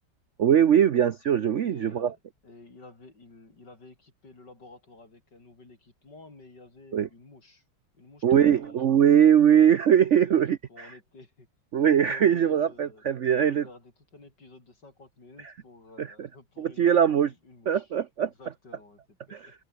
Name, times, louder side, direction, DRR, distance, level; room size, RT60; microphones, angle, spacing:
voice 1, 0.4-2.1 6.9-7.1 8.2-10.9 11.7-13.6 16.0-16.3 16.6-17.3 17.7-18.3 19.3-19.5, right 9 dB, 65° right, 0.7 m, -21 dB
voice 2, 1.6-7.6 7.9-8.9 10.1-11.5 11.8-17.9 18.2-19.6, left 3 dB, 55° left, 6.2 m, -52 dB
omnidirectional pair, 2.2 m